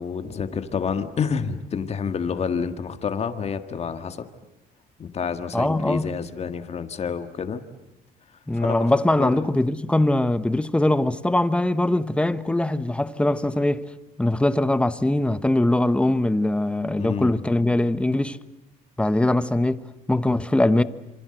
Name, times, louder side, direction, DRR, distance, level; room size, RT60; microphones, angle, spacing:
voice 1, 0.0-4.3 5.0-7.6 8.6-8.8 9.2-9.5 17.0-17.5, left 6 dB, 40° left, 1.7 m, -28 dB
voice 2, 5.5-6.1 8.5-13.8 14.2-18.4 19.0-20.8, left 1 dB, 5° left, 1.0 m, -22 dB
27.5 x 25.0 x 7.9 m
cardioid pair, 110°, 17 cm